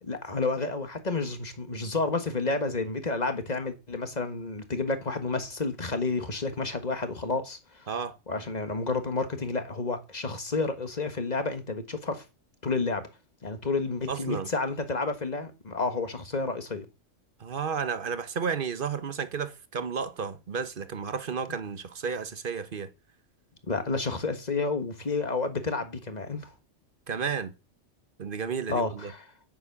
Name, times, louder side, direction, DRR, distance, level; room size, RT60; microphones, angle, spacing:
voice 1, 0.0-7.9 8.3-12.2 12.6-13.1 13.4-16.8 23.6-26.5 28.7-29.3, left 3 dB, 35° left, 1.6 m, -30 dB
voice 2, 14.1-14.5 17.4-22.9 27.1-27.5 28.2-29.1, right 6 dB, 45° right, 1.1 m, -32 dB
9.4 x 9.0 x 5.9 m
omnidirectional pair, 1.3 m